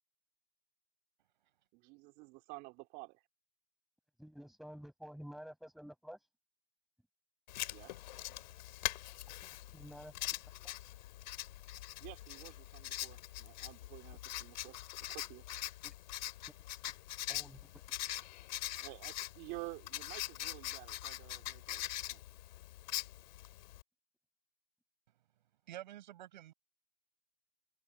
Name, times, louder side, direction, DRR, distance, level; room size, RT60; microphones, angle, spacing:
voice 1, 1.7-3.2 7.7-7.9 12.0-14.8 15.1-15.4 18.8-21.8 22.1-22.2, right 26 dB, 30° right, 3.3 m, -50 dB
voice 2, 4.2-6.3 9.1-9.2 9.4-10.7 15.8-15.9 16.8-17.0 17.3-17.8, equal, ahead, 5.7 m, -51 dB
Writing, 7.5-23.8, left 14 dB, 50° left, 3.5 m, -43 dB
voice 3, 25.7-26.5, right 13 dB, 50° right, 7.4 m, -48 dB
hypercardioid pair, 130°, 30 cm